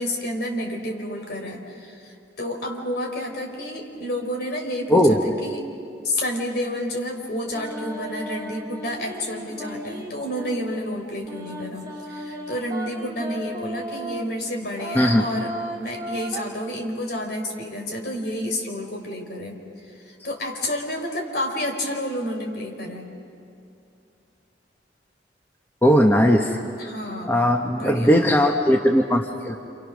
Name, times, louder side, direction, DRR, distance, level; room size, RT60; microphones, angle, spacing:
voice 1, 0.0-5.6 6.0-15.5 15.8-19.6 19.9-23.1 26.8-27.3 27.7-28.3, left 1 dB, 60° left, 1 dB, 4.3 m, -30 dB
voice 2, 4.9-5.2 14.9-15.2 25.8-26.6 27.3-29.6, equal, 10° left, 2 dB, 1.1 m, -18 dB
sound 1, 7.5-10.6 11.3-14.3 14.8-16.5, equal, 20° right, 3.0 m, -35 dB
29.5 x 28.0 x 6.3 m, 2.7 s
head